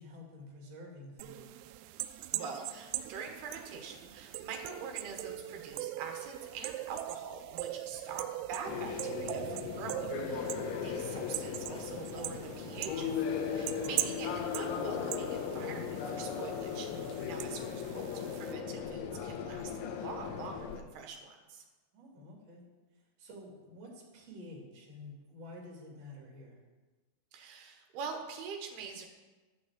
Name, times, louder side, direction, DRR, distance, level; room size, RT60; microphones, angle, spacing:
voice 1, 0.0-1.6 7.8-7.9 21.9-22.6 23.2-26.6, left 1 dB, 40° right, -2 dB, 3.5 m, -50 dB
sound 1, 1.2-18.5, right 15 dB, 85° right, 2.6 m, -41 dB
voice 2, 2.3-21.6 27.3-29.1, right 5 dB, 65° right, 3 dB, 2.9 m, -44 dB
sound 2, 8.7-20.8, left 7 dB, 80° left, 3.2 m, -37 dB
12.0 x 6.3 x 7.5 m, 1.2 s
omnidirectional pair, 5.5 m